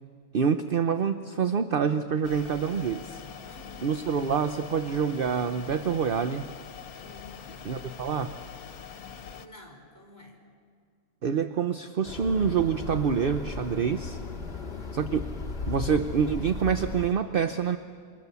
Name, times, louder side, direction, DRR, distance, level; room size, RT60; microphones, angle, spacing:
voice 1, 0.3-3.2 3.8-6.5 7.6-8.3 11.2-14.2 14.9-15.2 15.7-17.8, right 7 dB, 50° right, 9 dB, 0.8 m, -26 dB
sound 1, 2.2-9.5, left 7 dB, 80° left, 1.5 m, -44 dB
voice 2, 3.4-3.9 7.0-7.6 9.3-10.4 14.5-15.0, left 2 dB, 10° left, 1 dB, 4.3 m, -50 dB
sound 2, 12.0-17.1, left 4 dB, 45° left, 2.0 m, -36 dB
27.0 x 24.5 x 7.0 m, 2.1 s
omnidirectional pair, 1.5 m